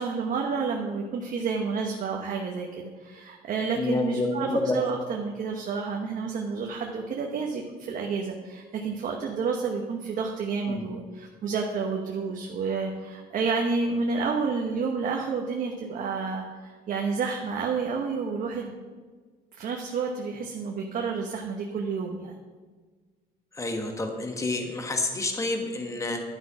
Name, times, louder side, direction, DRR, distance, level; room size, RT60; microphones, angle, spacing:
voice 1, 0.0-4.5 4.7-18.7 19.6-22.4, right 5 dB, 50° right, 1 dB, 1.1 m, -30 dB
voice 2, 3.8-4.8 10.7-10.8 23.5-26.2, left 2 dB, 20° left, 3 dB, 1.3 m, -28 dB
11.0 x 6.1 x 5.8 m, 1.4 s
cardioid pair, 110°, 17 cm